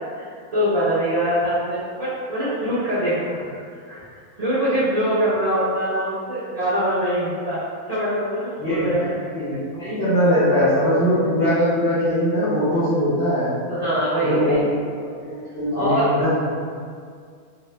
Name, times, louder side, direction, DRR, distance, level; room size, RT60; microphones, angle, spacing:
voice 1, 0.0-4.0 4.4-7.6 7.9-9.1 9.5-9.6 13.7-14.6 15.0-15.2 15.7-16.1, equal, 50° right, -11 dB, 0.4 m, -23 dB
voice 2, 8.6-9.1 9.3-13.5 14.2-14.5 15.1-16.4, equal, 45° left, -14 dB, 1.1 m, -21 dB
2.6 x 2.6 x 3.2 m, 2.1 s
omnidirectional pair, 1.6 m